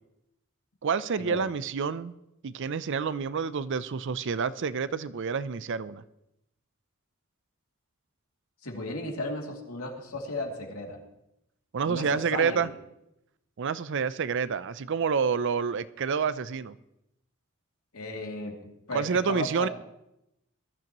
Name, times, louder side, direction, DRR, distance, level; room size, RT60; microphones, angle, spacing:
voice 1, 0.8-2.1 2.4-6.0 11.7-12.7 13.6-16.7 18.9-19.7, right 6 dB, 60° right, 16 dB, 0.5 m, -28 dB
voice 2, 8.6-11.0 11.9-12.7 17.9-19.7, left 2 dB, 90° left, 0 dB, 2.7 m, -35 dB
21.0 x 13.0 x 3.0 m, 0.86 s
head